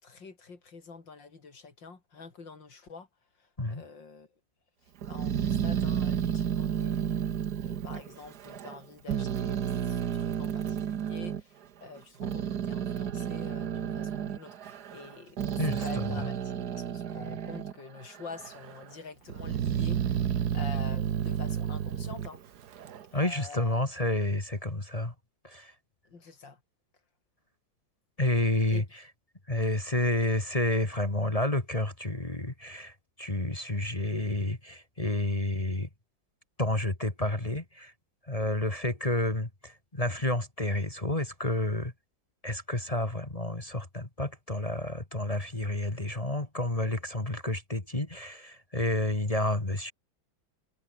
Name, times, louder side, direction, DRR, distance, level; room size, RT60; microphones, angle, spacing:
voice 1, 0.0-3.1 3.4-4.3 4.8-7.2 7.6-22.4 23.1-23.8 26.1-26.6 28.7-29.0, left 4 dB, 70° left, 4.3 m, -47 dB
Growling, 5.0-8.8 9.1-11.4 12.0-17.8 18.1-18.8 19.3-23.1, right 9 dB, 60° right, 1.7 m, -31 dB
voice 2, 15.6-16.3 23.1-25.1 25.4-25.7 28.2-28.8 29.5-35.9 36.6-37.9 38.3-41.9 42.4-49.9, left 1 dB, 20° left, 2.4 m, -30 dB
omnidirectional pair, 2.1 m